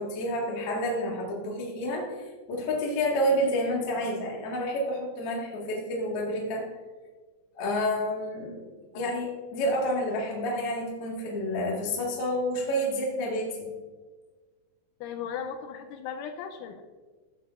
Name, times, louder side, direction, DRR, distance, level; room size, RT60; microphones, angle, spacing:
voice 1, 0.0-2.1 2.5-6.7 7.5-13.7, equal, 65° left, -2 dB, 1.5 m, -29 dB
voice 2, 15.0-16.8, left 7 dB, 85° left, 5 dB, 2.9 m, -37 dB
15.0 x 7.4 x 2.5 m, 1.3 s
omnidirectional pair, 5.7 m